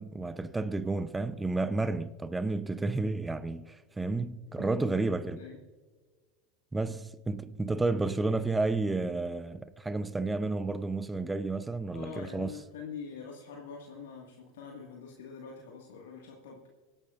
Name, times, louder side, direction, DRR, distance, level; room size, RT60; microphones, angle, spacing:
voice 1, 0.0-5.4 6.7-12.5, right 3 dB, 10° right, 0.6 m, -31 dB
voice 2, 11.9-16.6, left 6 dB, 80° left, 1.7 m, -44 dB
24.5 x 11.0 x 2.5 m
hypercardioid pair, 90°, 0 cm